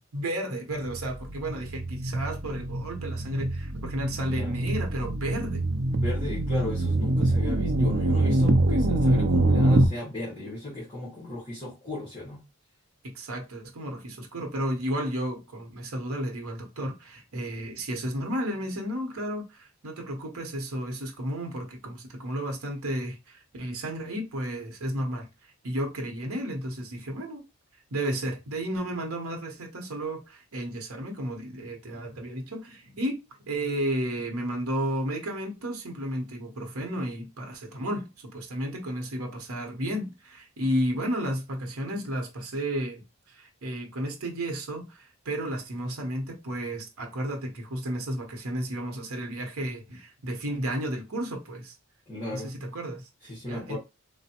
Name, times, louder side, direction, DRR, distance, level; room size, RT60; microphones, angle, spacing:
voice 1, 0.1-5.6 13.0-27.4 27.9-33.2 33.5-51.7 52.3-53.1 53.5-53.8, right 1 dB, 75° right, 0.8 m, -33 dB
sound 1, 0.8-9.9, right 1 dB, 45° right, 0.4 m, -25 dB
voice 2, 4.3-4.6 6.0-12.4 52.1-52.6 53.2-53.8, left 1 dB, 25° left, 1.0 m, -36 dB
3.4 x 2.1 x 2.8 m
head